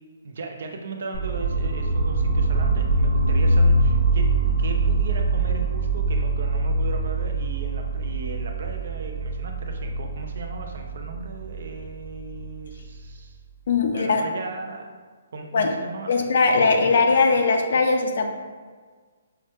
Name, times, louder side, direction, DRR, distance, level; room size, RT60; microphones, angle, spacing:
voice 1, 0.2-13.4 13.9-15.0 15.3-16.3, right 3 dB, 55° right, 3 dB, 0.5 m, -37 dB
sound 1, 1.1-13.1, right 2 dB, 25° right, 0.9 m, -23 dB
voice 2, 13.7-14.2 15.5-15.7 16.1-18.3, left 4 dB, 55° left, 5 dB, 0.5 m, -20 dB
5.7 x 2.2 x 3.1 m, 1.5 s
hypercardioid pair, 170°, 0 cm